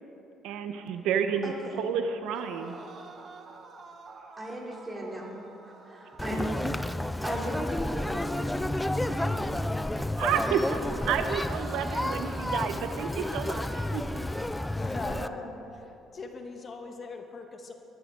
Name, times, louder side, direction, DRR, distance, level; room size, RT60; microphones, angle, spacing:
voice 1, 0.4-2.8 10.2-10.8 11.1-14.2, right 7 dB, 85° right, 7 dB, 0.8 m, -30 dB
voice 2, 1.4-1.8 4.4-5.3 5.6-6.9 7.2-9.7 10.3-10.8 15.0-15.3, right 1 dB, 20° right, -3 dB, 3.3 m, -38 dB
sound 1, 2.2-6.6 7.3-10.5 10.8-14.8, right 4 dB, 40° right, 1.3 m, -48 dB
Conversation, 6.2-15.3, left 1 dB, 5° left, 0.3 m, -31 dB
voice 3, 14.7-17.7, left 3 dB, 35° left, 4 dB, 1.3 m, -41 dB
22.5 x 12.0 x 3.8 m, 2.9 s
cardioid pair, 120°, 0 cm